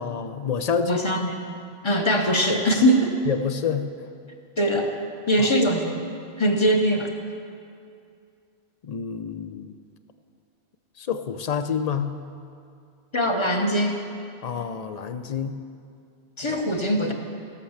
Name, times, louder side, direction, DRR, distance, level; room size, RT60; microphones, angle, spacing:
voice 1, 0.0-1.1 3.3-3.9 5.4-5.6 8.8-9.8 11.0-12.2 14.4-15.6 16.5-16.6, left 6 dB, 45° left, 10 dB, 0.6 m, -28 dB
voice 2, 0.8-1.3 1.8-3.1 4.6-4.9 5.3-6.0 6.4-7.1 13.1-14.0 16.4-17.1, equal, 30° left, 3 dB, 1.0 m, -21 dB
16.0 x 6.5 x 7.2 m, 2.4 s
omnidirectional pair, 1.1 m